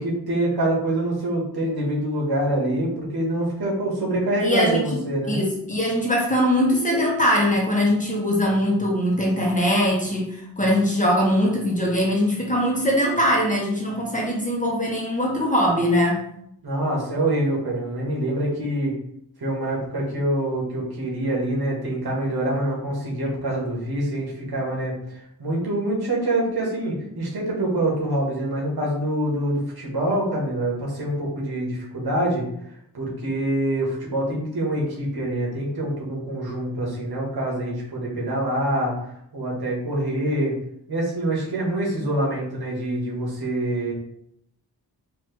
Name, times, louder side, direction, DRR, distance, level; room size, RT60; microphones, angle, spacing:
voice 1, 0.0-5.4 16.6-19.0 19.4-32.4 32.9-38.9 39.3-40.6 40.9-43.9, right 1 dB, 75° right, -3 dB, 1.5 m, -25 dB
voice 2, 4.4-16.2, equal, 20° left, -2 dB, 1.2 m, -21 dB
4.4 x 2.8 x 3.2 m, 0.73 s
wide cardioid pair, 75°, 39 cm